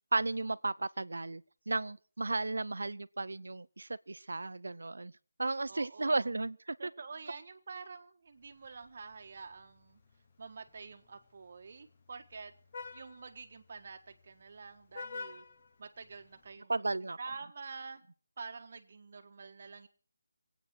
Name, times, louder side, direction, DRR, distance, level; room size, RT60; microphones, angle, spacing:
voice 1, 0.1-5.1 5.4-6.9 16.7-17.2, right 2 dB, 90° right, 0.7 m, -34 dB
voice 2, 5.7-6.3 6.8-10.0 10.4-12.5 12.9-15.4 15.8-16.7 17.2-18.0 18.4-19.9, right 4 dB, 35° right, 1.5 m, -47 dB
Vehicle horn car horn honking, 8.4-16.6, left 4 dB, 25° left, 1.2 m, -51 dB
22.5 x 9.0 x 6.3 m
figure-of-eight pair, 180°, 0 cm